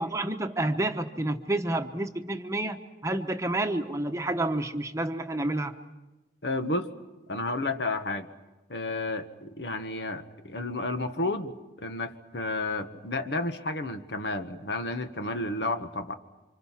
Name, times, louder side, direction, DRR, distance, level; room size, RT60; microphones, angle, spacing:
voice 1, 0.0-5.7, right 1 dB, 15° right, 6 dB, 1.0 m, -29 dB
voice 2, 6.4-6.9 7.3-8.3 8.7-16.2, left 2 dB, 75° left, 7 dB, 1.5 m, -31 dB
29.0 x 26.0 x 5.9 m, 1.1 s
head